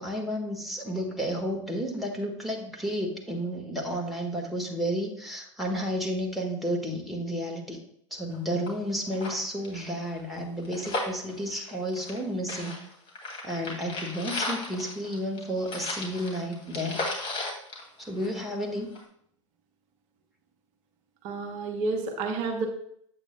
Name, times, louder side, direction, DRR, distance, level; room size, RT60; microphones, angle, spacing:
voice 1, 0.0-7.8 8.1-12.7 13.4-17.1 18.0-18.9, equal, ahead, -1 dB, 1.7 m, -32 dB
sound 1, 8.3-8.4 8.7-8.8 9.1-12.2 12.5-18.6 18.9-19.0, left 2 dB, 35° left, 2.5 m, -35 dB
voice 2, 21.2-22.7, right 3 dB, 50° right, 4 dB, 1.1 m, -30 dB
8.2 x 8.1 x 2.3 m, 0.66 s
figure-of-eight pair, 85°, 16 cm